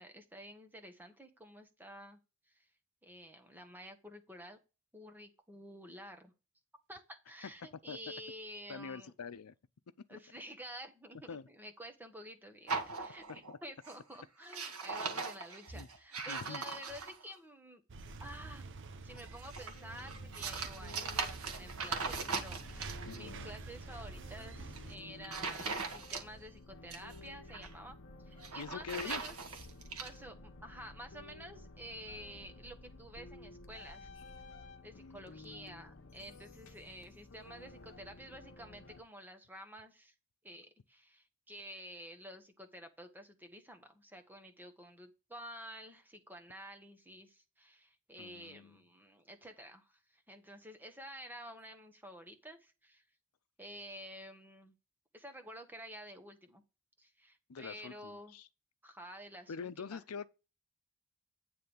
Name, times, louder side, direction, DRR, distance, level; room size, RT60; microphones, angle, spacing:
voice 1, 0.0-2.2 2.5-2.7 3.0-4.6 4.9-6.3 6.9-9.1 10.1-17.8 18.2-18.7 19.0-28.0 28.3-29.4 30.0-34.1 34.8-40.1 40.4-53.0 53.6-54.7 55.1-56.6 57.0-58.3 58.8-60.0, equal, 10° right, 1.0 m, -50 dB
voice 2, 8.7-9.5 10.1-10.2 11.3-11.4 13.5-13.6 15.7-15.9 16.3-16.6 23.0-23.5 28.6-29.2 34.9-35.3 48.2-48.8 57.5-58.5 59.5-60.3, left 6 dB, 85° left, 0.6 m, -45 dB
sound 1, 12.7-13.6 13.8-14.1 14.4-17.3 19.2-23.2 24.6-24.8 25.2-26.5 26.7-27.7 28.3-30.1, right 4 dB, 80° right, 1.5 m, -40 dB
sound 2, 17.9-25.0, right 3 dB, 60° right, 0.8 m, -48 dB
sound 3, 19.7-39.0, left 2 dB, 60° left, 1.1 m, -54 dB
9.5 x 3.3 x 6.9 m
head